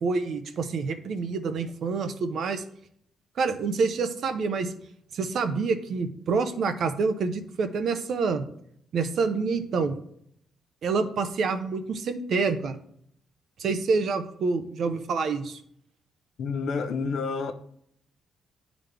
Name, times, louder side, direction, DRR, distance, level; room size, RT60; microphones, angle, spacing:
voice 1, 0.0-2.6 3.4-4.7 5.1-8.4 8.9-10.0 10.8-12.8 13.6-15.6, right 4 dB, 55° right, 0.6 m, -27 dB
voice 2, 16.4-17.5, left 4 dB, 60° left, 0.6 m, -29 dB
10.5 x 4.0 x 3.3 m
cardioid pair, 165°, 0 cm